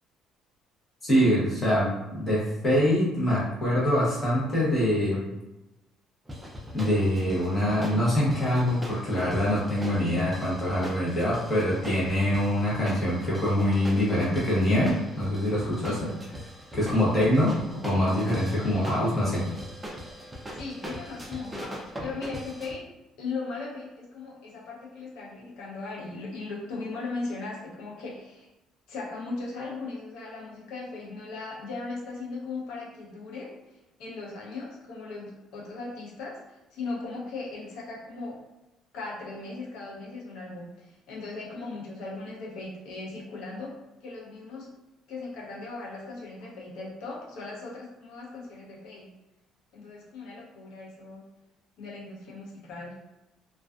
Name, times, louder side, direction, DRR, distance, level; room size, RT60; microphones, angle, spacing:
voice 1, 1.1-5.2 6.7-16.1 16.7-17.5 17.8-19.4, equal, 15° left, -8 dB, 0.8 m, -24 dB
sound 1, 6.3-22.7, equal, 10° right, 0.3 m, -41 dB
voice 2, 17.0-17.4 20.5-22.8 23.2-28.5 28.9-33.5 34.0-38.4 38.9-43.7 44.0-44.7 45.1-49.1 49.7-51.2 51.8-52.9, left 3 dB, 80° left, -4 dB, 0.6 m, -38 dB
2.4 x 2.3 x 2.3 m, 0.98 s
cardioid pair, 180°, 0 cm